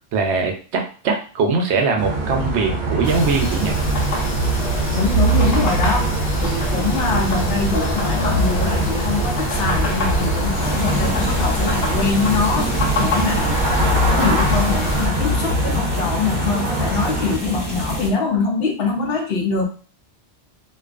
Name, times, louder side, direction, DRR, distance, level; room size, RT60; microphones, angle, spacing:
voice 1, 0.1-3.8, right 4 dB, 80° right, 2 dB, 0.9 m, -21 dB
sound 1, 2.0-17.4, right 1 dB, 50° right, 0.8 m, -23 dB
sound 2, 3.0-15.1, equal, 90° left, 1.0 m, -25 dB
voice 2, 4.9-19.6, left 4 dB, 65° left, 1 dB, 0.8 m, -23 dB
sound 3, 10.6-18.1, right 1 dB, 15° right, 1.0 m, -28 dB
2.4 x 2.3 x 2.4 m, 0.40 s
omnidirectional pair, 1.2 m